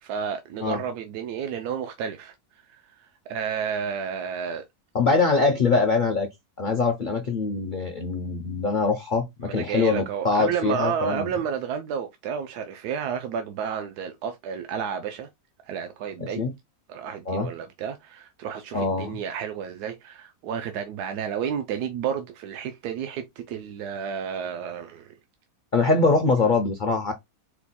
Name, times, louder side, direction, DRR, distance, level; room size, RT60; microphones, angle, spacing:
voice 1, 0.0-4.6 9.4-15.3 15.7-16.4 16.9-25.1, right 7 dB, 85° right, 1.2 m, -31 dB
voice 2, 4.9-6.3 6.6-11.3 16.2-16.5 17.3-17.5 18.7-19.2 25.7-27.1, left 4 dB, 65° left, 0.5 m, -23 dB
4.6 x 2.2 x 4.1 m
omnidirectional pair, 1.6 m